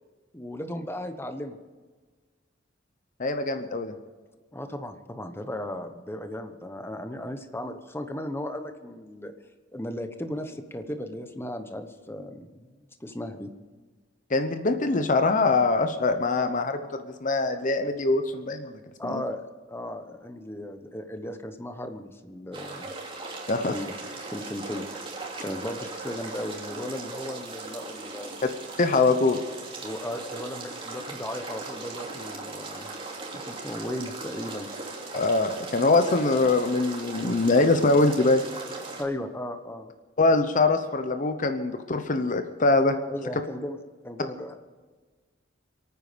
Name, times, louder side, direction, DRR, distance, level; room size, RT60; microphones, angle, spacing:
voice 1, 0.3-1.6 4.5-9.3 9.7-12.7 13.0-13.5 19.0-22.9 23.7-23.9 24.3-25.1 25.4-28.3 29.8-32.9 33.3-34.7 39.0-39.9 40.3-40.4 43.1-43.8 44.0-44.6, left 1 dB, 15° left, 7 dB, 1.0 m, -36 dB
voice 2, 3.2-3.9 14.3-19.2 23.5-23.7 28.8-29.4 35.1-38.4 40.2-43.0, left 3 dB, 45° left, 8 dB, 0.8 m, -23 dB
sound 1, 22.5-39.0, right 3 dB, 30° right, 2.8 m, -38 dB
28.0 x 9.4 x 5.2 m, 1.4 s
head